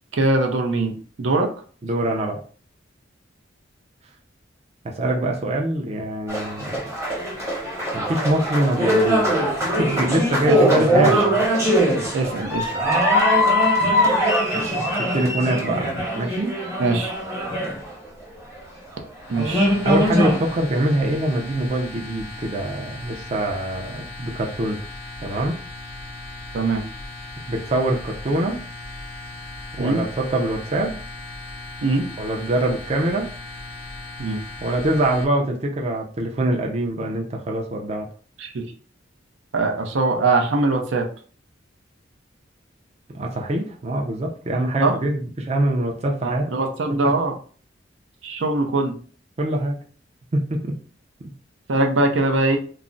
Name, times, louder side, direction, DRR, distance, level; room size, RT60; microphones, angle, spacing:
voice 1, 0.1-1.5 10.5-11.1 12.1-12.7 16.8-17.1 19.3-19.7 26.5-26.9 29.8-30.0 31.8-32.1 34.2-34.4 38.4-38.6 39.5-41.0 44.8-44.9 46.2-47.3 48.2-48.9 51.7-52.6, right 2 dB, 80° right, 3 dB, 0.5 m, -22 dB
voice 2, 1.8-2.4 4.8-6.8 7.9-11.5 14.5-16.5 19.8-24.8 25.2-25.6 27.5-28.6 29.7-30.9 32.2-33.3 34.6-38.1 43.1-46.5 49.4-49.8 50.3-50.8, right 1 dB, 35° right, 0 dB, 0.4 m, -24 dB
sound 1, 6.3-18.2 19.0-19.1 19.4-20.6, equal, 15° right, 0.8 m, -21 dB
sound 2, 19.2-35.2, left 2 dB, 80° left, 0.6 m, -37 dB
2.3 x 2.0 x 3.7 m, 0.43 s
head